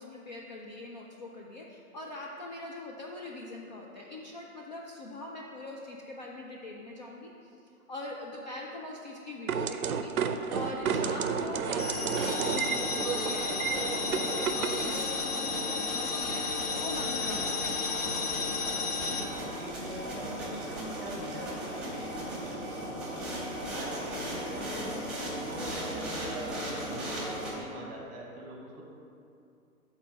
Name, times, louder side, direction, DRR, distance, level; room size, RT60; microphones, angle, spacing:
voice 1, 0.0-7.6 7.9-17.7 18.0-18.2, left 2 dB, 30° left, -2 dB, 0.4 m, -42 dB
sound 1, 9.5-15.0, right 7 dB, 70° right, 0.6 m, -32 dB
sound 2, 10.7-27.5, equal, ahead, 1.4 m, -37 dB
sound 3, 11.8-19.2, left 5 dB, 80° left, 1.2 m, -33 dB
voice 2, 19.2-25.0 25.4-28.8, right 1 dB, 20° right, -2 dB, 1.1 m, -43 dB
7.2 x 4.2 x 5.7 m, 2.5 s
figure-of-eight pair, 130°, 44 cm